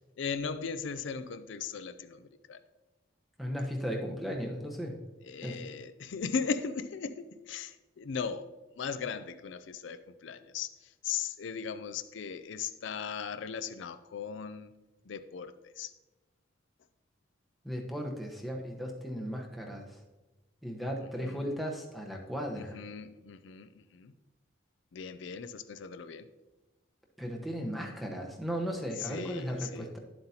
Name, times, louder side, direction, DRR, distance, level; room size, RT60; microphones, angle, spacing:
voice 1, 0.2-2.6 5.2-8.5 8.8-14.7 15.1-15.9 21.0-21.5 22.5-24.1 24.9-26.3 29.0-29.9, left 6 dB, 75° left, 10 dB, 0.4 m, -38 dB
voice 2, 3.4-5.0 5.4-5.6 17.6-20.0 20.6-22.8 27.2-30.0, equal, ahead, 0 dB, 1.0 m, -36 dB
10.5 x 7.6 x 2.8 m, 1.1 s
head